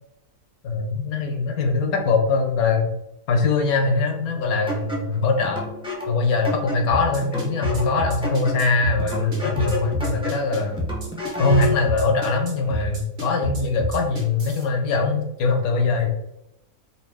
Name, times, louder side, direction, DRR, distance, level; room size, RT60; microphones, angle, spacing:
voice 1, 0.6-2.9 3.3-5.7 6.1-10.9 11.4-16.1, left 3 dB, 75° left, 3 dB, 1.2 m, -22 dB
sound 1, 4.7-11.8, left 2 dB, 5° right, 0.6 m, -32 dB
sound 2, 6.9-14.6, equal, 45° right, 1.3 m, -29 dB
4.2 x 2.6 x 3.4 m, 0.84 s
omnidirectional pair, 1.6 m